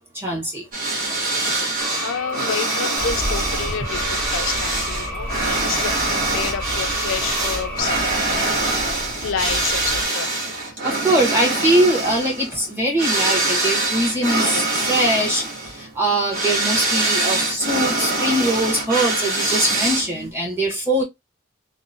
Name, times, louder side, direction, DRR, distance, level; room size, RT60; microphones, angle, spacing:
voice 1, 0.1-0.6 10.8-15.5 15.8-21.0, right 1 dB, 10° right, 1.0 m, -21 dB
sound 1, 0.7-20.3, right 2 dB, 40° right, 1.0 m, -24 dB
voice 2, 1.7-7.9 9.2-10.4, left 7 dB, 70° left, 0.4 m, -29 dB
sound 2, 1.8-7.8, left 1 dB, 5° left, 0.6 m, -33 dB
sound 3, 3.0-10.1, equal, 60° right, 1.1 m, -33 dB
2.9 x 2.0 x 2.5 m
head